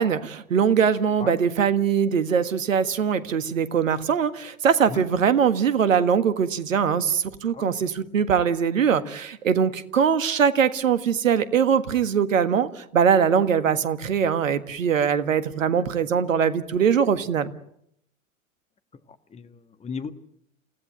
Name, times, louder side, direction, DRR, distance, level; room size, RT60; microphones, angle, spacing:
voice 1, 0.0-17.5, right 7 dB, 70° right, 12 dB, 1.7 m, -22 dB
voice 2, 19.3-20.1, left 5 dB, 15° left, 10 dB, 1.6 m, -35 dB
28.5 x 16.0 x 9.3 m, 0.74 s
figure-of-eight pair, 90°, 41 cm